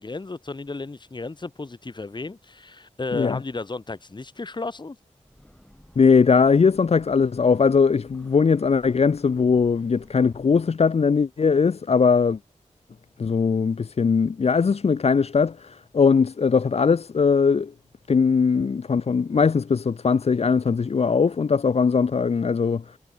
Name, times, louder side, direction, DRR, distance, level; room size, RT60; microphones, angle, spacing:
voice 1, 0.0-5.0, left 3 dB, 35° left, 1.0 m, -33 dB
Breathing / Train, 5.1-10.8, equal, 5° left, 5.1 m, -53 dB
voice 2, 6.0-12.4 13.2-17.7 18.1-22.8, left 5 dB, 50° left, 0.5 m, -20 dB
cardioid pair, 50°, 13 cm